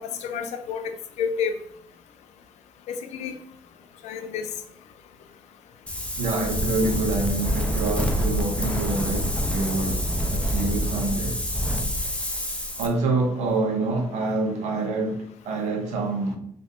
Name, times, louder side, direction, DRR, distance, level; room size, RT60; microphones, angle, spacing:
voice 1, 0.0-1.5 2.9-3.4 4.0-4.5, left 6 dB, 75° left, 0.4 m, -30 dB
Wind, 5.9-12.9, equal, 10° left, 0.7 m, -26 dB
voice 2, 6.2-11.4 12.8-16.4, right 3 dB, 80° right, 0.7 m, -26 dB
3.2 x 2.6 x 2.7 m
hypercardioid pair, 45°, 12 cm